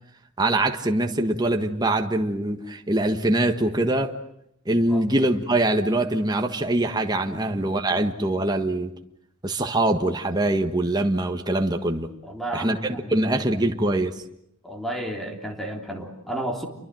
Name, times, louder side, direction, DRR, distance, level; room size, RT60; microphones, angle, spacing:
voice 1, 0.4-4.2 4.6-8.9 9.4-12.1 12.5-14.1, right 1 dB, 20° right, 1.6 m, -23 dB
voice 2, 12.2-13.6 14.6-16.7, right 1 dB, ahead, 3.5 m, -33 dB
29.5 x 24.0 x 7.7 m
head